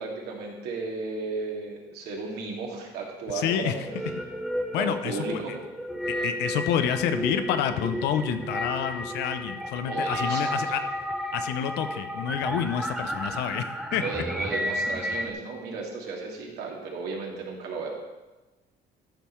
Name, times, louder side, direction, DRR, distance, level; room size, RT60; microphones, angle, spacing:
voice 1, 0.0-3.9 4.8-5.6 9.9-10.8 14.0-17.9, right 4 dB, 75° right, -1 dB, 2.4 m, -34 dB
voice 2, 3.3-3.9 4.7-5.4 6.2-10.8 11.3-14.0, left 9 dB, 85° left, 10 dB, 0.8 m, -28 dB
sound 1, 3.8-15.3, equal, ahead, 0.7 m, -32 dB
13.0 x 5.5 x 4.5 m, 1.1 s
cardioid pair, 110°, 17 cm